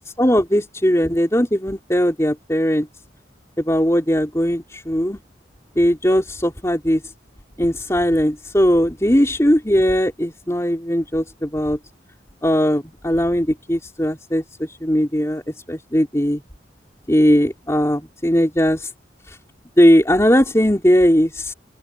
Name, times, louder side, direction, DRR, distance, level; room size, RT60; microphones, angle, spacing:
voice 1, 0.2-2.9 3.6-5.2 5.8-7.0 7.6-11.8 12.4-15.4 15.7-16.4 17.1-18.9 19.3-19.4 19.8-21.5, equal, 15° left, 3.7 m, -18 dB
open air
head